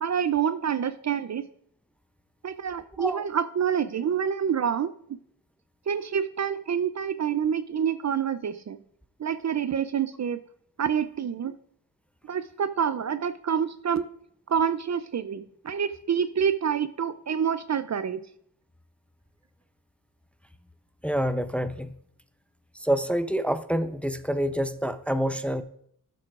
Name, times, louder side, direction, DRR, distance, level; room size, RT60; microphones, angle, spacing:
voice 1, 0.0-1.4 2.4-4.9 5.9-8.8 9.2-10.4 10.8-11.5 12.3-14.1 14.5-18.2, right 8 dB, 45° right, 13 dB, 0.5 m, -27 dB
voice 2, 21.0-22.0 22.7-25.6, equal, 5° left, 11 dB, 0.6 m, -27 dB
12.5 x 7.7 x 2.5 m, 0.67 s
cardioid pair, 55°, 39 cm